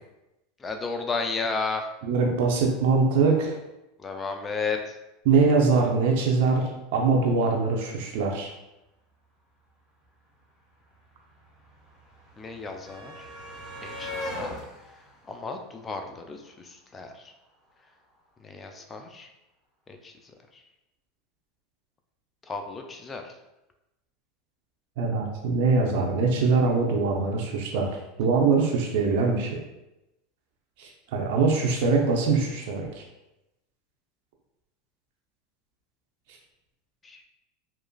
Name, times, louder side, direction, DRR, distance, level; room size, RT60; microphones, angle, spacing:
voice 1, 0.6-1.9 4.0-4.9 12.4-13.3 13.8-14.5 15.3-17.1 18.4-19.3 19.9-20.1 22.5-23.3 37.0-37.2, left 4 dB, 20° left, 4 dB, 0.4 m, -33 dB
voice 2, 2.0-3.6 5.3-8.5 25.0-27.9 28.2-29.5 30.8-33.0, right 4 dB, 65° right, 0 dB, 0.5 m, -23 dB
sound 1, 10.0-10.1 10.3-16.5 17.7-17.8 18.1-18.2, left 1 dB, 25° right, 1.0 m, -40 dB
2.8 x 2.4 x 2.3 m, 0.93 s
hypercardioid pair, 105°, 0 cm